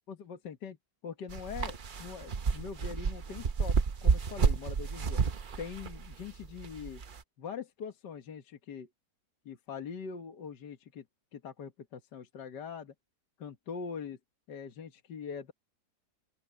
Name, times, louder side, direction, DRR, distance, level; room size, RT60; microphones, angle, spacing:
voice 1, 0.1-0.8 1.0-5.2 5.6-7.0 7.4-8.9 9.5-11.0 11.3-12.9 13.4-14.2 14.5-15.5, left 6 dB, 70° left, 2.0 m, -42 dB
sound 1, 1.3-7.2, right 5 dB, 50° right, 0.6 m, -30 dB
open air
omnidirectional pair, 1.9 m